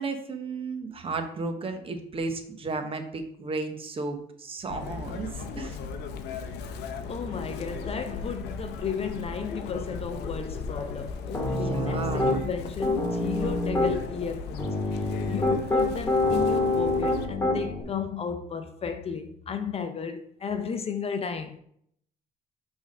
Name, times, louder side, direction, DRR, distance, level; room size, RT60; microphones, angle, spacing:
voice 1, 0.0-5.8 11.5-12.5, right 3 dB, 35° right, 1.0 m, -34 dB
Chirp tweet, 4.7-17.3, left 5 dB, 75° left, 0.7 m, -37 dB
voice 2, 6.8-21.6, left 6 dB, 35° left, 0.6 m, -34 dB
Piano, 11.3-12.4 12.8-13.9 14.6-17.8, left 2 dB, 15° left, 1.9 m, -26 dB
6.0 x 3.5 x 5.4 m
cardioid pair, 110°, 17 cm